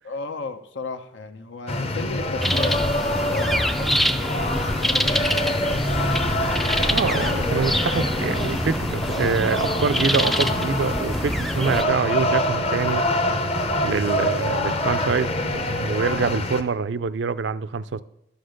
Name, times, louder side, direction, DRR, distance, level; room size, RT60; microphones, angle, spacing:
voice 1, 0.0-6.3, left 3 dB, 75° left, 0.8 m, -35 dB
sound 1, 1.7-16.6, left 1 dB, 35° left, 0.8 m, -25 dB
sound 2, 2.4-11.8, equal, ahead, 0.3 m, -26 dB
voice 2, 6.9-13.0 13.8-18.0, right 5 dB, 70° right, 0.5 m, -25 dB
11.5 x 6.6 x 6.4 m
head